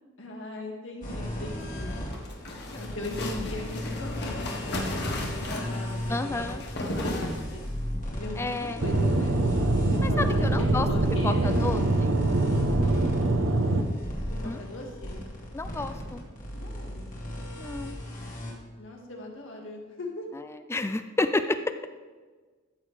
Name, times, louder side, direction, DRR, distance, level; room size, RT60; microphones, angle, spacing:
voice 1, 0.2-1.9 2.7-6.4 6.8-7.6 8.1-9.4 9.9-11.6 14.3-15.3 16.5-17.1 18.8-20.3, left 2 dB, 75° left, 0 dB, 1.9 m, -39 dB
sound 1, 1.0-18.5, left 1 dB, 40° left, 2.1 m, -36 dB
sound 2, 1.8-7.9, left 1 dB, 55° left, 1.4 m, -35 dB
voice 2, 6.1-6.6 8.4-8.8 10.0-10.9 11.2-12.1 14.4-14.6 15.5-16.3 17.6-17.9 20.7-21.7, left 2 dB, 15° left, 10 dB, 0.3 m, -30 dB
Aircraft / Engine, 8.8-13.8, right 2 dB, 80° right, 1.0 m, -24 dB
13.5 x 7.0 x 3.3 m, 1.4 s
head